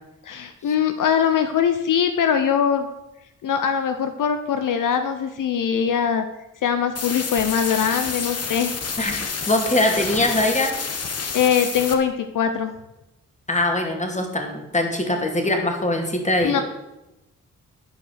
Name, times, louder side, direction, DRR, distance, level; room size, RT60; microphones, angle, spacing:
voice 1, 0.2-2.9 3.4-6.3 6.6-8.8 11.3-12.7 16.4-16.6, left 8 dB, 70° left, 8 dB, 0.8 m, -22 dB
sound 1, 7.0-12.0, left 5 dB, 50° left, 1.4 m, -29 dB
voice 2, 9.0-10.7 13.5-16.6, left 1 dB, 20° left, 3 dB, 2.5 m, -22 dB
11.0 x 4.9 x 6.4 m, 0.95 s
cardioid pair, 60°, 33 cm